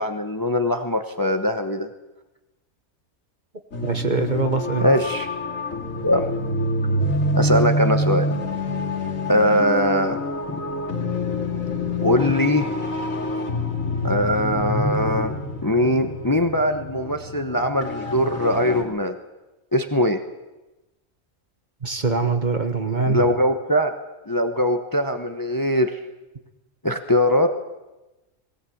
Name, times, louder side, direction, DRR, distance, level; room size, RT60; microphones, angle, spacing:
voice 1, 0.0-1.9 4.8-5.3 6.0-6.3 7.3-8.3 9.3-10.2 10.5-10.6 12.0-12.7 14.0-15.3 15.6-19.2 19.7-20.2 23.1-23.9 24.3-26.0 26.8-27.5, left 1 dB, 15° left, 7 dB, 1.0 m, -21 dB
sound 1, 3.7-18.8, left 1 dB, 90° left, 2.9 m, -26 dB
voice 2, 3.8-4.9 21.8-23.3, right 4 dB, 35° right, 7 dB, 1.5 m, -23 dB
19.5 x 17.5 x 8.6 m, 1.1 s
omnidirectional pair, 1.4 m